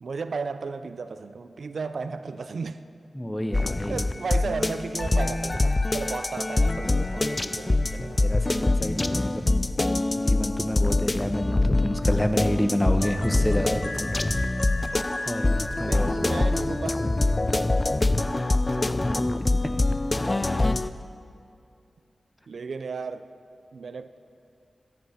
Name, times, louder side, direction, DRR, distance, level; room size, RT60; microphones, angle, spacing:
voice 1, 0.0-2.8 3.9-8.3 15.8-19.1 22.5-23.3 23.7-24.2, right 4 dB, 75° right, 0.5 m, -35 dB
voice 2, 3.1-4.1 8.1-9.4 10.1-14.2 14.8-16.5, left 1 dB, 10° left, 1.0 m, -29 dB
sound 1, 3.5-20.9, left 2 dB, 30° left, 0.4 m, -24 dB
14.5 x 11.0 x 5.8 m
wide cardioid pair, 75°, 0 cm